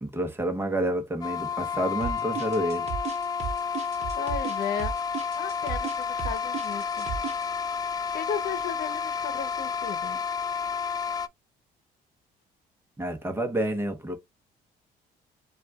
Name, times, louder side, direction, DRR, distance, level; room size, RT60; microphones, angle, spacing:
voice 1, 0.0-2.9 13.0-14.1, right 1 dB, 15° right, 1.1 m, -29 dB
sound 1, 1.2-11.3, left 6 dB, 25° left, 0.4 m, -31 dB
sound 2, 2.0-7.4, right 7 dB, 40° right, 1.0 m, -34 dB
voice 2, 4.1-5.0 5.3-7.1 8.1-10.2, left 8 dB, 70° left, 0.9 m, -35 dB
7.4 x 2.5 x 2.3 m
cardioid pair, 110°, 17 cm